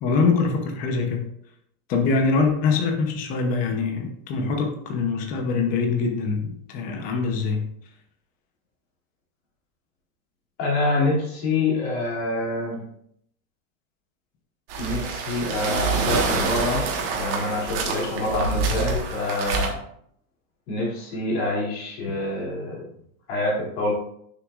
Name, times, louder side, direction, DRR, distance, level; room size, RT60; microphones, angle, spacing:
voice 1, 0.0-1.3 1.9-7.7, left 4 dB, 20° left, 3 dB, 0.8 m, -24 dB
voice 2, 10.6-12.8 14.8-16.8 17.1-19.7 20.7-22.8 23.3-23.9, left 2 dB, 45° left, -4 dB, 2.9 m, -26 dB
sound 1, 14.7-19.7, right 4 dB, 45° right, 1.5 m, -26 dB
9.8 x 6.2 x 2.5 m, 0.70 s
supercardioid pair, 175°, 41 cm